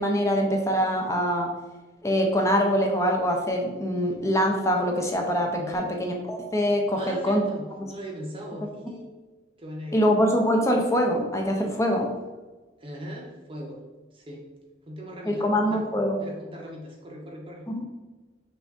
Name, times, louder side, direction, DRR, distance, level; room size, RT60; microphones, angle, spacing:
voice 1, 0.0-1.5 2.0-7.5 7.8-7.9 9.9-12.1 15.3-16.2 17.7-17.8, equal, 15° left, 1 dB, 0.5 m, -24 dB
voice 2, 5.6-5.9 6.9-9.1 9.6-10.1 12.8-13.8 14.1-14.4 14.9-15.8 16.2-17.7, equal, 30° right, -1 dB, 0.7 m, -39 dB
6.0 x 2.5 x 3.5 m, 1.2 s
head